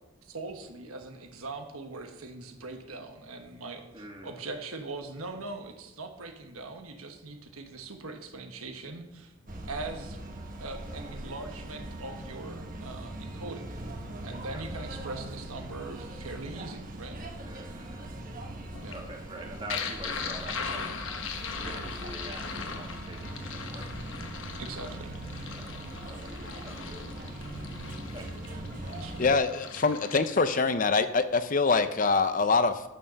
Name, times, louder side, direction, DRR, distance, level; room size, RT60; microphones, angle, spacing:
voice 1, 0.2-9.3 9.7-10.2 10.6-13.7 14.2-17.2 18.8-18.9 24.6-25.2 28.9-29.2, right 3 dB, 90° right, 5 dB, 1.3 m, -41 dB
voice 2, 3.9-4.4 14.4-14.6 17.4-18.0 18.9-20.9 21.4-23.9 25.4-26.3 26.6-27.0 28.1-28.3, right 1 dB, 25° right, 1 dB, 1.6 m, -45 dB
sound 1, 9.5-29.4, right 1 dB, 40° right, 1.2 m, -41 dB
sound 2, 18.7-30.6, left 5 dB, 65° left, 1.0 m, -39 dB
voice 3, 29.2-32.8, left 4 dB, 40° left, 11 dB, 0.5 m, -24 dB
8.9 x 6.8 x 6.4 m, 0.95 s
head